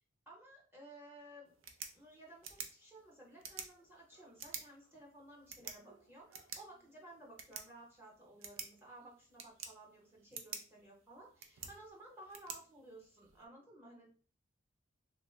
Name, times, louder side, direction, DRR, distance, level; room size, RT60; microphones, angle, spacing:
voice 1, 0.3-1.5 1.9-14.1, right 1 dB, 10° right, -2 dB, 0.7 m, -56 dB
sound 1, 1.4-13.4, right 6 dB, 85° right, 0.5 m, -51 dB
3.0 x 2.1 x 3.1 m, 0.41 s
head